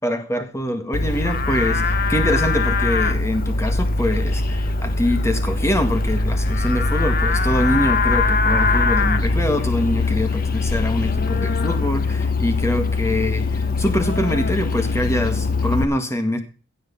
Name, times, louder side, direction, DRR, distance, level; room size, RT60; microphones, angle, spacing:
voice 1, 0.0-16.4, left 1 dB, 15° left, 7 dB, 1.9 m, -24 dB
Livestock farm animals working animals, 0.9-15.8, left 3 dB, 50° left, 1.0 m, -21 dB
16.5 x 6.5 x 5.8 m, 0.36 s
head